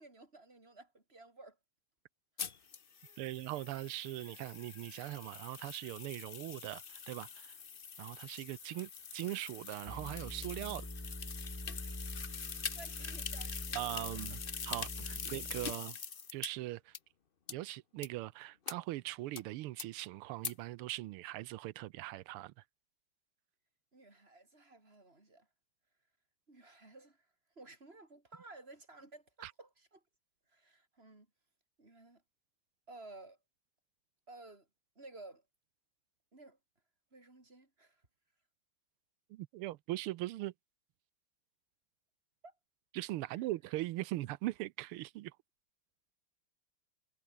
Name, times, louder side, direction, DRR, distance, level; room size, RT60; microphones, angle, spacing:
voice 1, 0.0-1.6 2.4-2.7 3.0-3.4 12.5-14.4 23.9-25.5 26.5-27.3 27.6-30.0 30.5-31.3 31.8-32.2 32.9-33.4 34.3-34.7 35.0-35.5 36.3-36.6 37.1-38.1 42.4-42.6 43.3-43.5, right 2 dB, 25° right, 4.5 m, -55 dB
sound 1, 2.4-16.5 16.9-17.0 17.5-17.6 18.0-18.1 18.7-18.8 19.4-19.5 19.8-19.9 20.4-20.5, left 6 dB, 40° left, 0.8 m, -44 dB
voice 2, 3.2-7.5 8.0-10.9 13.7-14.4 14.6-16.0 16.3-16.9 17.5-22.5 29.4-29.5 39.3-40.5 42.9-45.3, right 16 dB, 85° right, 1.5 m, -40 dB
sound 2, 9.9-15.7, left 1 dB, 5° left, 3.5 m, -45 dB
omnidirectional pair, 2.4 m